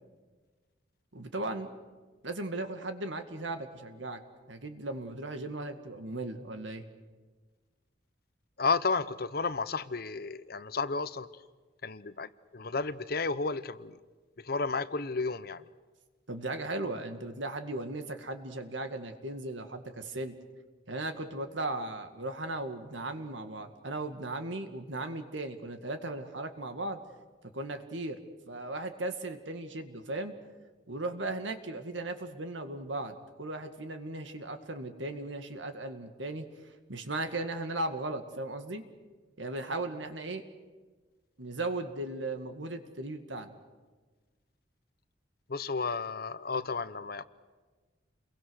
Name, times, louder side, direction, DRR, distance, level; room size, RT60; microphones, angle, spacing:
voice 1, 1.1-1.8 2.2-4.2 4.5-6.8 16.3-20.3 20.9-27.0 27.5-28.2 28.5-30.3 30.9-36.5 36.9-38.8 39.4-40.4 41.4-43.5, right 2 dB, 85° right, 7 dB, 2.0 m, -37 dB
voice 2, 8.6-11.3 11.8-14.0 14.4-15.7 45.5-47.2, left 4 dB, 55° left, 14 dB, 0.8 m, -32 dB
29.0 x 22.5 x 6.5 m, 1.4 s
head